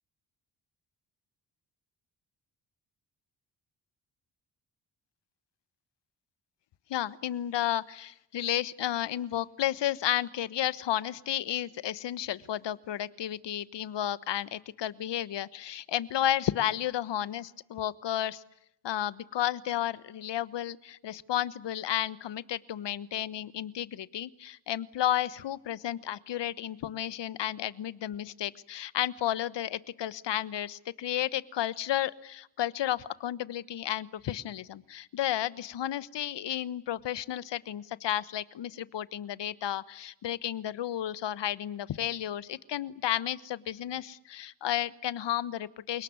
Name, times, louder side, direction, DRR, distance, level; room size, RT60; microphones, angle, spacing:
voice 1, 6.9-18.4 18.8-46.0, left 12 dB, 80° left, 17 dB, 1.3 m, -32 dB
29.5 x 19.0 x 9.6 m, 0.77 s
cardioid pair, 85°, 42 cm